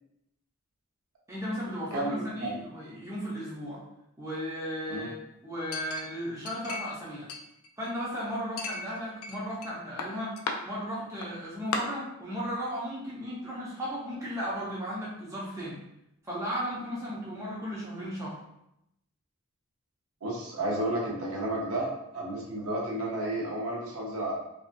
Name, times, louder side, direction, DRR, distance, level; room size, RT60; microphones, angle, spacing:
voice 1, 1.3-3.8 4.2-7.3 7.8-10.4 10.6-15.8 16.2-18.4, equal, 15° right, -7 dB, 0.6 m, -35 dB
voice 2, 1.9-2.5 4.9-5.1 20.2-24.3, right 1 dB, 90° right, -4 dB, 0.8 m, -32 dB
Chink clink, 5.7-7.0 7.3-8.1 8.6-9.7 10.0-10.6 11.2-11.3 11.7-11.8, left 4 dB, 85° left, 0.4 m, -36 dB
2.6 x 2.3 x 2.5 m, 0.82 s
head